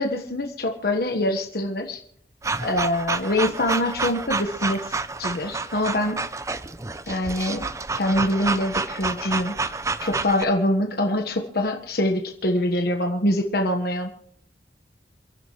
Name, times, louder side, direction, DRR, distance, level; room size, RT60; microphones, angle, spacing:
voice 1, 0.0-2.0 2.6-4.9 5.2-6.2 7.1-7.7 7.9-9.5 10.0-14.1, left 1 dB, 60° left, 3 dB, 1.4 m, -24 dB
sound 1, 2.4-10.5, right 3 dB, 15° right, 0.5 m, -29 dB
28.5 x 11.0 x 3.2 m, 0.63 s
head